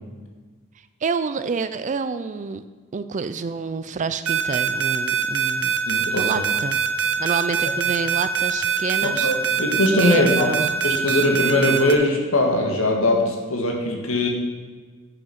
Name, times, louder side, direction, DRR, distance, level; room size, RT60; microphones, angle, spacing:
voice 1, 1.0-2.6 2.9-5.8 6.2-6.8 7.2-9.3 10.0-10.7, right 5 dB, 35° right, 12 dB, 0.4 m, -28 dB
sound 1, 4.3-11.9, right 8 dB, 90° right, 1.0 m, -22 dB
voice 2, 5.9-6.3 9.0-10.5 10.8-14.3, left 1 dB, 70° left, 1 dB, 1.7 m, -21 dB
10.0 x 6.2 x 5.8 m, 1.4 s
head